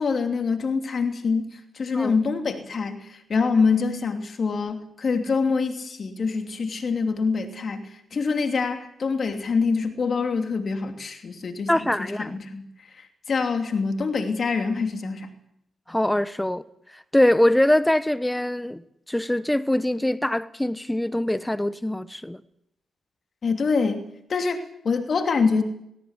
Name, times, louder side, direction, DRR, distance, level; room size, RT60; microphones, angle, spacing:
voice 1, 0.0-11.7 12.0-12.6 13.0-15.3 23.4-25.6, left 4 dB, 60° left, 3.0 m, -25 dB
voice 2, 11.7-12.4 15.9-16.6 16.9-18.8 19.1-22.4, left 1 dB, 10° left, 1.2 m, -23 dB
18.5 x 18.0 x 8.3 m
supercardioid pair, 50°, 0 cm